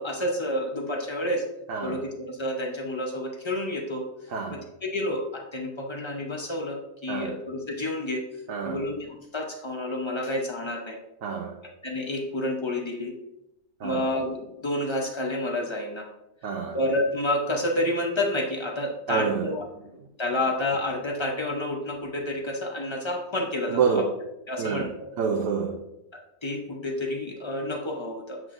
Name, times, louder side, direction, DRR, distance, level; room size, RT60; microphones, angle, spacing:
voice 1, 0.0-1.5 1.8-4.1 4.5-8.2 8.6-11.0 11.8-13.2 13.8-16.1 16.7-19.6 20.2-24.0 24.5-24.9 26.1-28.4, left 1 dB, 30° left, 1 dB, 0.5 m, -29 dB
voice 2, 4.3-4.6 7.1-7.4 8.5-8.8 11.2-11.5 13.8-14.1 16.4-16.8 19.1-19.5 23.7-24.0 24.6-24.9 25.2-25.8, right 6 dB, 65° right, 1 dB, 1.0 m, -27 dB
7.5 x 6.0 x 2.6 m, 0.89 s
omnidirectional pair, 1.6 m